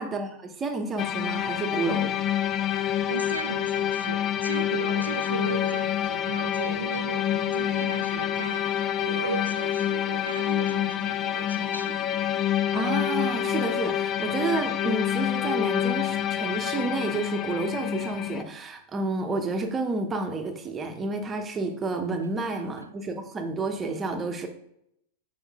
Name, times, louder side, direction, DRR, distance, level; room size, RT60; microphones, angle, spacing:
voice 1, 0.0-2.1 4.9-5.0 12.7-24.5, right 3 dB, 20° right, 0.9 m, -30 dB
sound 1, 1.0-18.4, left 11 dB, 30° left, 0.3 m, -27 dB
voice 2, 3.1-12.0 22.5-22.9, right 3 dB, 80° right, 0.4 m, -36 dB
7.2 x 4.6 x 3.5 m
figure-of-eight pair, 90°, 0 cm